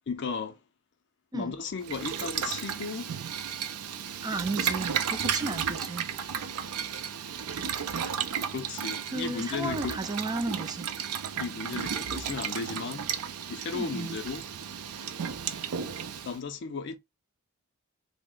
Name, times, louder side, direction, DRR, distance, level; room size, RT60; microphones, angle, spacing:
voice 1, 0.1-0.6 1.3-3.1 8.5-10.0 11.3-13.1 13.5-14.4 16.2-17.0, left 5 dB, 55° left, 0.4 m, -35 dB
Boiling, 1.8-16.4, right 7 dB, 85° right, 0.4 m, -34 dB
voice 2, 4.2-6.1 9.1-10.9 13.7-14.2, right 3 dB, 20° right, 0.3 m, -34 dB
3.1 x 2.0 x 3.6 m
head